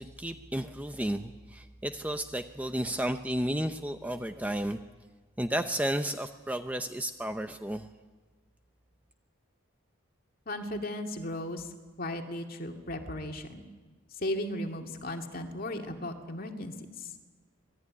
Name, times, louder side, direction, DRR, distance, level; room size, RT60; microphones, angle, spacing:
voice 1, 0.0-4.8 5.4-7.9, right 1 dB, 5° right, 7 dB, 0.7 m, -32 dB
voice 2, 10.5-11.6 12.0-13.6 14.2-16.7, left 1 dB, 45° left, 4 dB, 2.4 m, -36 dB
26.0 x 18.5 x 9.7 m, 1.3 s
head